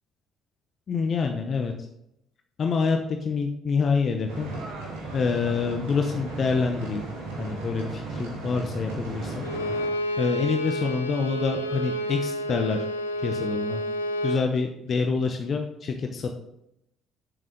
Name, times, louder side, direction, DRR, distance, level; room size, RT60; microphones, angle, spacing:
voice 1, 0.9-1.7 2.6-4.5 5.1-7.0 7.4-9.4 10.2-12.8 13.2-13.8 14.2-16.3, left 5 dB, 45° left, 4 dB, 0.9 m, -26 dB
sound 1, 4.3-9.9, right 3 dB, 75° right, 2.4 m, -35 dB
Bowed string instrument, 9.4-14.5, equal, 85° left, 0.6 m, -30 dB
8.1 x 7.3 x 5.1 m, 0.81 s
figure-of-eight pair, 50°, 0 cm